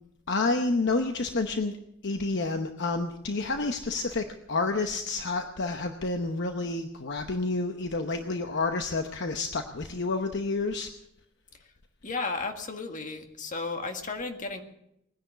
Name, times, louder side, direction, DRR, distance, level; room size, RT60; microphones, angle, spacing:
voice 1, 0.3-1.8 2.0-10.9, left 3 dB, 60° left, 6 dB, 0.9 m, -29 dB
voice 2, 12.0-14.6, left 3 dB, 40° left, 5 dB, 1.7 m, -34 dB
20.0 x 10.0 x 6.8 m, 0.79 s
head